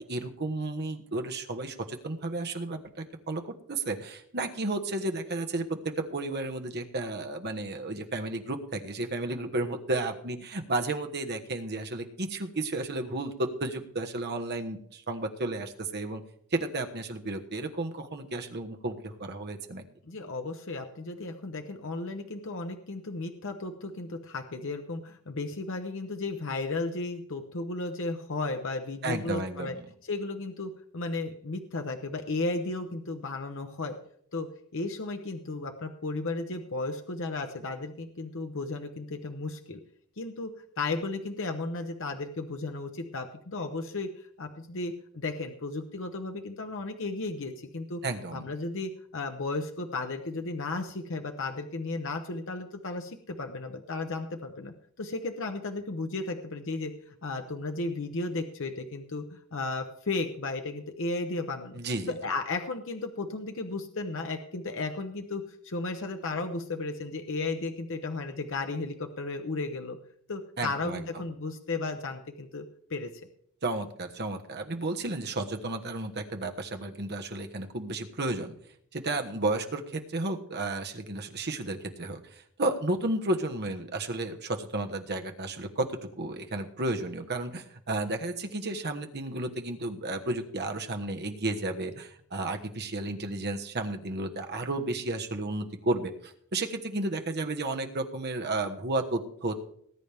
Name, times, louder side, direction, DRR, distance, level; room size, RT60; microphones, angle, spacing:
voice 1, 0.1-16.2 16.5-19.8 29.0-29.8 48.0-48.5 61.7-62.1 70.6-71.0 73.6-78.5 78.9-99.5, right 2 dB, 50° right, 5 dB, 1.3 m, -32 dB
voice 2, 20.0-29.7 30.0-34.0 34.3-39.8 40.2-40.5 40.8-44.1 44.4-48.0 48.3-61.8 62.1-70.0 70.3-73.1, left 3 dB, 60° left, 5 dB, 0.9 m, -34 dB
19.0 x 9.2 x 3.5 m, 0.65 s
head